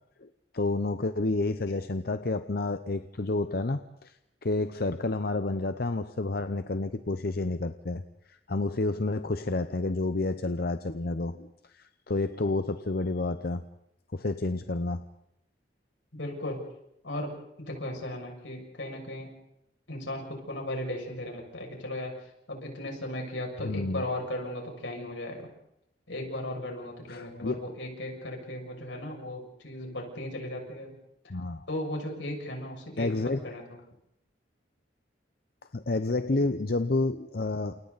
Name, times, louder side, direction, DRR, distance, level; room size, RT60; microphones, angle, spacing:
voice 1, 0.5-4.1 4.4-8.0 8.3-13.6 14.1-15.0 23.6-24.0 27.1-27.6 31.3-31.7 33.0-33.4 35.7-37.8, left 2 dB, 55° left, 10 dB, 0.8 m, -30 dB
voice 2, 16.1-16.6 17.0-17.3 17.6-19.3 19.9-25.5 26.1-31.0 31.7-33.8, left 1 dB, 85° left, 1 dB, 6.7 m, -36 dB
30.0 x 28.5 x 4.1 m, 0.80 s
head